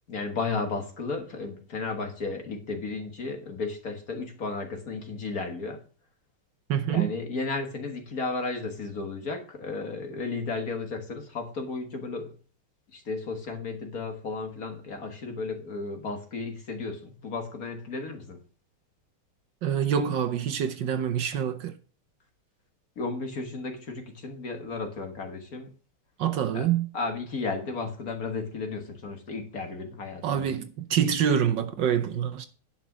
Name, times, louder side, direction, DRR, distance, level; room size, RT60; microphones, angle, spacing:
voice 1, 0.1-5.8 6.9-12.3 12.9-18.4 23.0-25.7 26.5-26.7 26.9-30.5, left 3 dB, 45° left, 1.8 m, -34 dB
voice 2, 6.7-7.1 19.6-21.7 26.2-26.9 30.2-32.5, right 9 dB, 65° right, 1.4 m, -26 dB
10.5 x 5.8 x 6.3 m
omnidirectional pair, 2.3 m